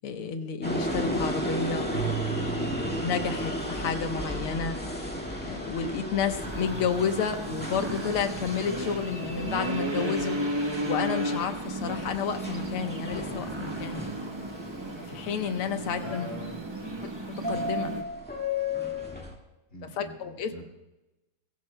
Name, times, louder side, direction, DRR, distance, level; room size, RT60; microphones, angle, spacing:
voice 1, 0.0-4.8 5.5-10.4 10.9-14.1 15.1-16.3 17.5-17.9 20.0-20.5, left 6 dB, 90° left, 7 dB, 1.9 m, -31 dB
sound 1, 0.6-19.4, left 1 dB, 5° left, 1.5 m, -35 dB
Keyboard (musical), 1.9-4.2, right 15 dB, 60° right, 1.4 m, -37 dB
sound 2, 6.4-18.0, right 1 dB, 25° right, 0.5 m, -34 dB
voice 2, 16.0-17.0 19.7-20.6, left 2 dB, 35° left, -1 dB, 2.2 m, -42 dB
22.0 x 15.5 x 2.2 m, 1.0 s
omnidirectional pair, 2.3 m